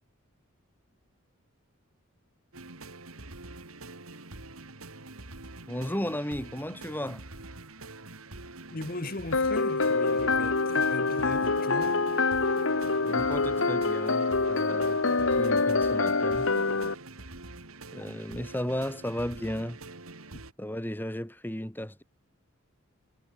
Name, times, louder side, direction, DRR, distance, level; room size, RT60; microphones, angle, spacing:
sound 1, 2.5-20.5, right 2 dB, 90° right, 3.6 m, -45 dB
voice 1, 5.7-7.2 13.0-15.0 15.4-16.5 17.9-19.8 20.6-22.0, equal, 10° left, 2.1 m, -34 dB
voice 2, 8.7-12.1, left 2 dB, 45° left, 1.3 m, -38 dB
sound 2, 9.3-16.9, left 3 dB, 65° left, 1.4 m, -26 dB
head